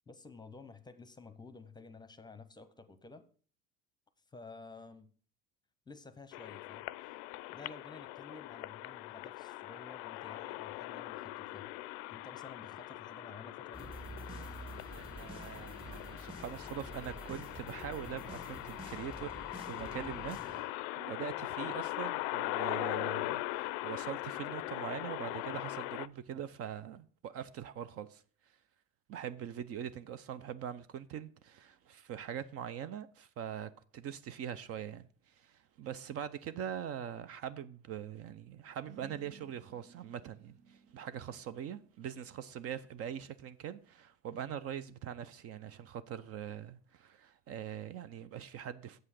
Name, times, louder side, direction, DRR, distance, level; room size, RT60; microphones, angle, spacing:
voice 1, 0.1-3.3 4.3-5.1 5.9-7.2 7.5-11.7 12.1-14.0, left 3 dB, 15° left, 0.8 m, -52 dB
sound 1, 6.3-26.1, left 18 dB, 80° left, 0.5 m, -41 dB
sound 2, 13.7-20.6, right 1 dB, 15° right, 1.6 m, -48 dB
voice 2, 14.9-28.6 29.1-49.0, right 9 dB, 50° right, 0.6 m, -43 dB
sound 3, 38.9-43.9, right 5 dB, 80° right, 1.0 m, -60 dB
7.8 x 5.6 x 6.3 m
supercardioid pair, 110°, 31 cm